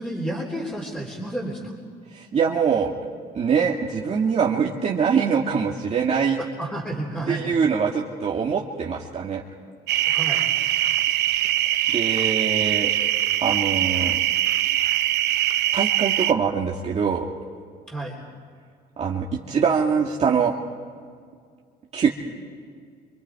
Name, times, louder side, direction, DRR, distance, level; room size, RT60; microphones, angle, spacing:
voice 1, 0.0-1.7 6.6-7.7 10.1-10.5 17.9-18.2, right 1 dB, 5° left, -2 dB, 3.7 m, -31 dB
voice 2, 2.1-2.9 3.3-6.4 7.3-9.4 11.9-12.9 13.4-14.2 15.7-17.3 19.0-20.5 21.9-22.1, right 6 dB, 40° right, -2 dB, 2.0 m, -23 dB
sound 1, 9.9-16.3, right 13 dB, 80° right, 0.9 m, -22 dB
29.0 x 26.5 x 4.8 m, 2.1 s
cardioid pair, 110°, 17 cm